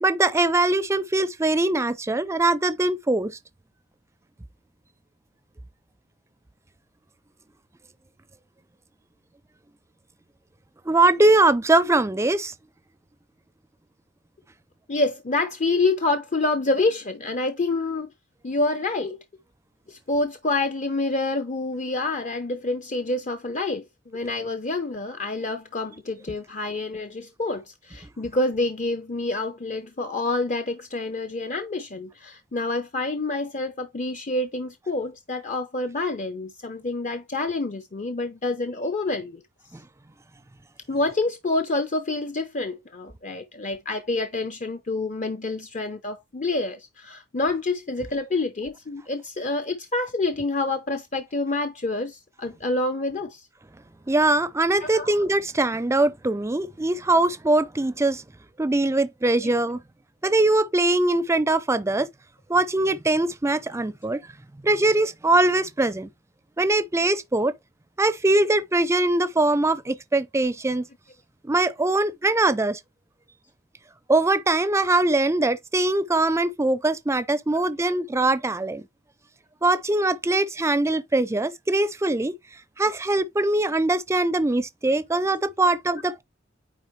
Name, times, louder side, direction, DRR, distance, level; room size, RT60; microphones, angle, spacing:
voice 1, 0.0-3.4 10.9-12.5 39.7-39.8 54.1-58.2 58.6-59.8 60.2-62.1 62.5-64.2 64.6-66.1 66.6-67.5 68.0-70.9 71.4-72.8 74.1-78.8 79.6-82.3 82.8-86.2, right 2 dB, 15° right, 0.5 m, -22 dB
voice 2, 14.9-18.1 18.4-19.2 19.9-23.8 24.1-39.4 40.9-53.4 54.8-55.2 59.4-59.5 77.5-77.6, left 2 dB, 40° left, 0.7 m, -27 dB
9.2 x 3.4 x 3.1 m
head